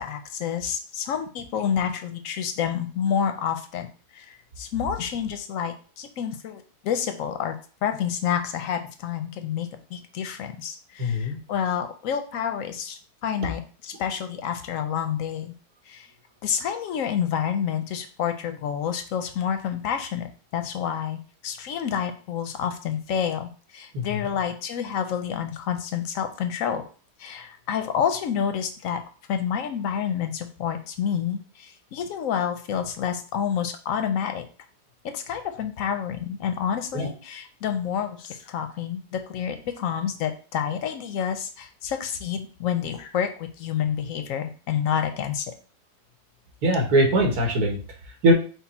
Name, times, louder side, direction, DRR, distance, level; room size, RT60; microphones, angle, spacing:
voice 1, 0.0-3.9 4.1-7.5 7.8-15.5 15.9-16.1 16.4-20.3 20.5-26.8 27.2-29.0 29.3-34.4 35.0-45.5, left 8 dB, 70° left, 8 dB, 0.9 m, -29 dB
voice 2, 11.0-11.4 23.9-24.2 36.9-37.1 46.6-47.8 48.2-48.3, right 1 dB, 70° right, 0 dB, 1.7 m, -21 dB
5.4 x 2.3 x 4.1 m, 0.38 s
omnidirectional pair, 1.7 m